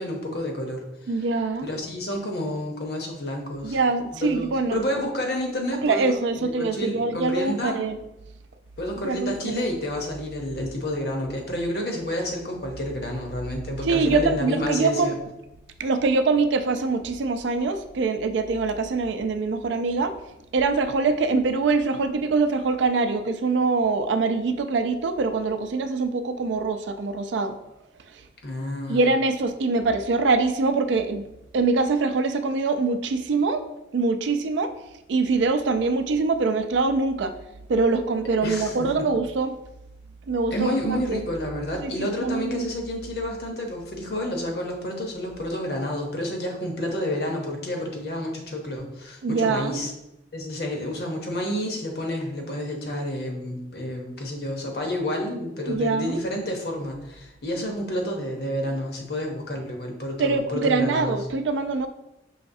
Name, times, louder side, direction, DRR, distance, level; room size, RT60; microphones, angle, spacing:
voice 1, 0.0-1.1 1.6-3.8 4.1-7.9 8.8-15.2 28.4-29.0 38.4-38.9 40.5-49.9 50.3-61.1, left 1 dB, 60° left, 2 dB, 0.8 m, -30 dB
voice 2, 1.1-1.7 3.6-4.8 5.8-8.0 9.0-9.7 13.8-15.2 15.8-20.2 20.5-27.6 28.9-31.3 31.5-33.6 33.9-34.7 35.1-37.3 37.7-39.6 40.3-41.2 41.8-42.7 49.2-49.8 55.7-56.2 60.2-61.9, right 3 dB, 85° right, 9 dB, 0.4 m, -24 dB
5.6 x 3.1 x 2.6 m, 0.91 s
head